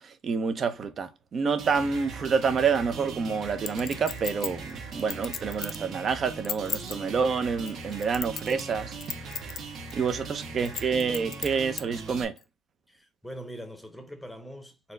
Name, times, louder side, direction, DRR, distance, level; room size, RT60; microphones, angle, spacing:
voice 1, 0.0-8.9 9.2-9.4 9.9-12.3, right 5 dB, 35° right, 0.6 m, -28 dB
sound 1, 1.6-12.2, right 4 dB, 55° right, 1.3 m, -40 dB
Chink clink, 3.7-5.9 6.3-7.0 7.6-8.7 9.0-9.6 9.9-10.0 10.7-11.8 12.4-12.5, left 8 dB, 50° left, 0.4 m, -34 dB
voice 2, 12.9-14.9, equal, 5° left, 0.8 m, -42 dB
4.3 x 2.2 x 3.8 m
cardioid pair, 130°, 0 cm